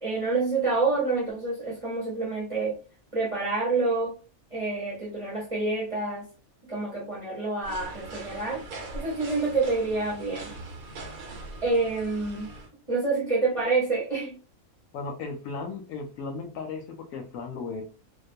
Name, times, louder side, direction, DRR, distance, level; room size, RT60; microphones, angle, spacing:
voice 1, 0.0-2.8 3.1-4.1 4.5-6.2 6.7-8.6 8.9-10.5 11.6-12.5 12.9-14.3, right 3 dB, 25° right, -5 dB, 0.8 m, -27 dB
sound 1, 7.6-12.7, right 2 dB, 80° right, 1.1 m, -41 dB
voice 2, 14.9-17.8, left 4 dB, 70° left, 5 dB, 0.9 m, -36 dB
2.4 x 2.3 x 2.6 m, 0.35 s
omnidirectional pair, 1.5 m